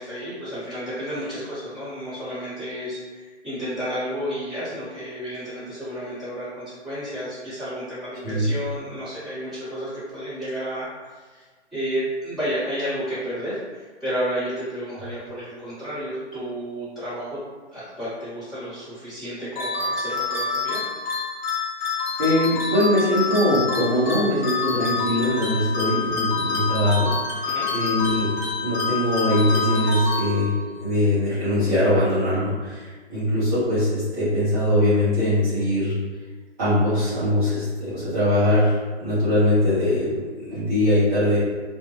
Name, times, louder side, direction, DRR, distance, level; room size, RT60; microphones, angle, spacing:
voice 1, 0.0-11.4 11.7-17.4 17.7-20.8 27.4-27.7, equal, ahead, -17 dB, 1.0 m, -31 dB
sound 1, 19.6-30.8, left 4 dB, 40° left, 0.6 m, -27 dB
voice 2, 22.2-27.4 27.7-28.3 28.6-30.5 30.8-36.0 36.6-41.4, left 1 dB, 20° right, -13 dB, 0.5 m, -22 dB
2.2 x 2.1 x 3.1 m, 1.4 s
hypercardioid pair, 145°, 35 cm